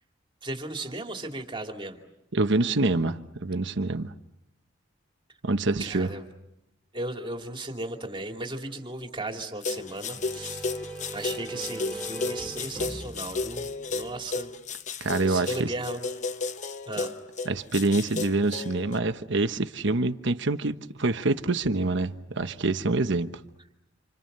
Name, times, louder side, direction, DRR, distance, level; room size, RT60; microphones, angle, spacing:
voice 1, 0.4-2.0 5.8-6.3 6.9-10.7 11.1-14.5 15.3-16.0 16.9-17.1, right 2 dB, 25° right, 2.7 m, -36 dB
voice 2, 2.3-4.1 5.4-6.1 15.0-15.7 17.5-23.3, right 2 dB, 65° right, 1.1 m, -26 dB
sound 1, 9.6-19.0, left 4 dB, 40° left, 0.9 m, -33 dB
sound 2, 9.7-14.4, right 2 dB, 5° left, 3.4 m, -40 dB
29.0 x 27.5 x 6.8 m
head